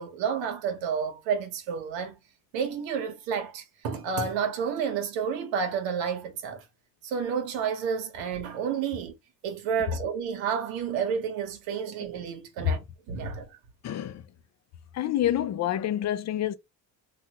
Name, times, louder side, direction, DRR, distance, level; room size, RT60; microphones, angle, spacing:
voice 1, 0.0-2.2 2.5-6.6 7.0-9.1 9.4-12.8 13.1-13.5, right 6 dB, 90° right, 1.1 m, -30 dB
voice 2, 13.8-14.3 14.9-16.6, left 11 dB, 40° left, 0.4 m, -27 dB
3.3 x 2.5 x 2.9 m
cardioid pair, 100°, 43 cm